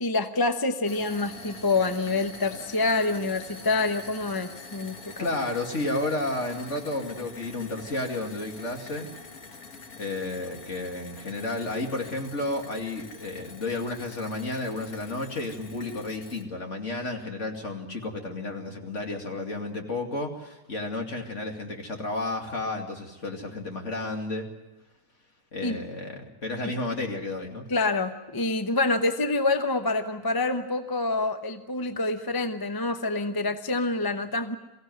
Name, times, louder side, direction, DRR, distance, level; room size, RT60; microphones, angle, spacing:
voice 1, 0.0-5.3 25.6-25.8 26.6-26.7 27.7-34.6, left 3 dB, 20° left, 7 dB, 0.8 m, -27 dB
sound 1, 0.8-16.4, left 4 dB, 85° left, 2.3 m, -45 dB
voice 2, 5.2-9.1 10.0-24.5 25.5-27.6, left 2 dB, 50° left, 2 dB, 2.8 m, -32 dB
23.0 x 16.0 x 9.4 m, 1.0 s
omnidirectional pair, 1.6 m